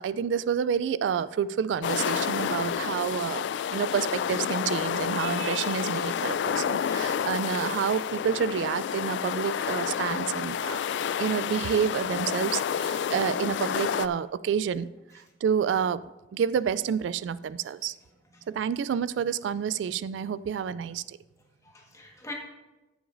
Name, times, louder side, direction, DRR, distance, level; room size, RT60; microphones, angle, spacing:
voice 1, 0.0-10.8 11.2-14.9 15.4-16.0 16.3-17.9 18.5-21.2, right 7 dB, 90° right, 17 dB, 0.3 m, -29 dB
sound 1, 1.8-14.1, left 8 dB, 70° left, 0.3 m, -29 dB
voice 2, 21.6-22.3, left 2 dB, 20° left, 0 dB, 1.5 m, -45 dB
14.0 x 7.9 x 2.6 m, 1.1 s
head